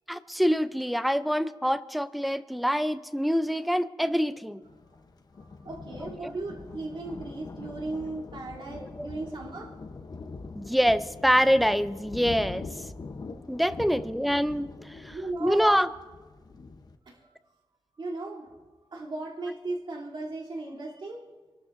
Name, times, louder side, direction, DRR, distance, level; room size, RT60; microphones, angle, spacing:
voice 1, 0.1-4.6 6.2-6.3 9.0-9.1 10.6-12.7 13.5-15.9, equal, ahead, 13 dB, 0.5 m, -25 dB
Thunder, 4.6-17.0, left 4 dB, 45° left, 0.9 m, -43 dB
voice 2, 5.3-9.7 13.8-14.0 15.1-15.7 17.1-17.2 18.0-18.5 18.9-21.2, right 2 dB, 55° right, -4 dB, 3.1 m, -36 dB
29.0 x 12.5 x 2.6 m, 1.4 s
wide cardioid pair, 140°, 9 cm